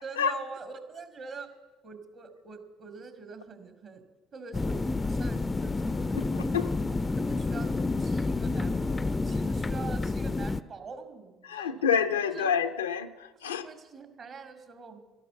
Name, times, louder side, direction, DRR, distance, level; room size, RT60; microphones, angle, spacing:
voice 1, 0.0-1.5 1.8-4.0 4.3-6.5 6.8-11.8 12.2-12.5 13.4-15.0, right 4 dB, 50° right, 2.3 m, -44 dB
sound 1, 4.5-10.6, left 3 dB, 25° left, 0.5 m, -29 dB
voice 2, 11.5-13.1 13.4-13.7, left 7 dB, 90° left, 0.6 m, -27 dB
13.0 x 11.5 x 6.9 m
hypercardioid pair, 55°, 0 cm